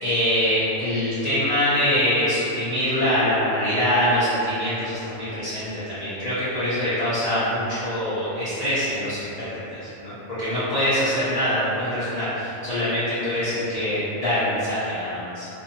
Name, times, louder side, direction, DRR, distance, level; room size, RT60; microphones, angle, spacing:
voice 1, 0.0-15.5, equal, 45° left, -13 dB, 0.5 m, -24 dB
2.6 x 2.1 x 2.7 m, 3.0 s
omnidirectional pair, 1.2 m